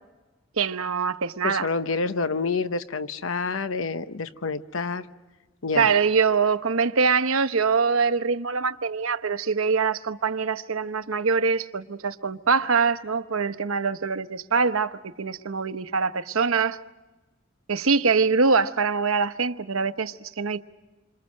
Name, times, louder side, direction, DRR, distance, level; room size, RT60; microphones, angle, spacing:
voice 1, 0.6-1.7 5.7-16.8 17.7-20.6, right 5 dB, 90° right, 1.0 m, -24 dB
voice 2, 1.4-5.1 5.6-5.9, left 4 dB, 70° left, 0.9 m, -28 dB
28.0 x 26.0 x 6.5 m
head